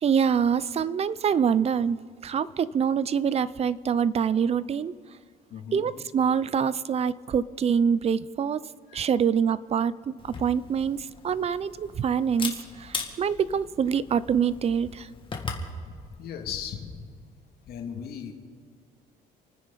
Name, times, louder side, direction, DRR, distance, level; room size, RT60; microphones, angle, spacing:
voice 1, 0.0-2.0 2.2-4.9 5.7-8.6 8.9-15.1, right 7 dB, 40° right, 18 dB, 0.6 m, -25 dB
voice 2, 5.5-5.9 8.9-9.1 15.7-17.0 17.6-18.3, left 8 dB, 65° left, 2 dB, 2.5 m, -37 dB
Camera, 10.2-15.7, left 4 dB, 30° left, 2.2 m, -39 dB
28.5 x 9.7 x 4.1 m, 2.1 s
cardioid pair, 110°, 17 cm